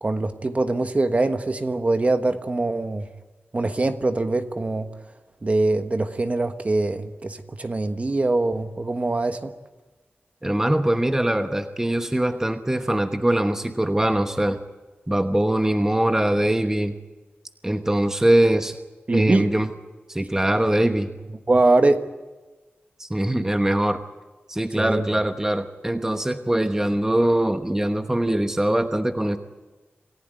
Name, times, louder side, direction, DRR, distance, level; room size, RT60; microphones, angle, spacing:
voice 1, 0.0-3.1 3.5-4.9 5.4-9.5 19.1-19.5 21.5-22.0 24.8-25.1, right 2 dB, 35° right, 8 dB, 1.3 m, -23 dB
voice 2, 10.4-14.6 15.1-16.9 17.6-18.8 19.1-19.7 20.1-21.1 23.0-24.0 24.5-29.4, right 1 dB, 10° right, 7 dB, 1.1 m, -22 dB
27.5 x 15.5 x 9.1 m, 1.2 s
wide cardioid pair, 90°, 4 cm